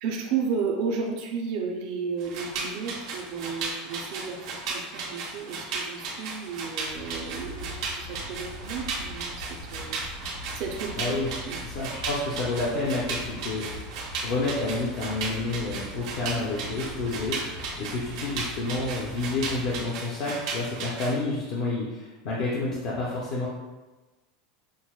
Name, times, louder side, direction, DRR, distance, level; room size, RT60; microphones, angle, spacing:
voice 1, 0.0-10.0 10.5-11.2 11.5-11.6, right 5 dB, 45° right, 0 dB, 0.5 m, -33 dB
sound 1, 2.2-21.2, right 4 dB, 70° right, 0.8 m, -35 dB
sound 2, 6.9-19.9, left 1 dB, 65° left, 1.1 m, -42 dB
voice 2, 11.0-11.3 11.6-13.9 14.2-23.5, left 3 dB, 45° left, -5 dB, 0.6 m, -29 dB
6.1 x 2.1 x 2.3 m, 1.2 s
supercardioid pair, 180°, 3 cm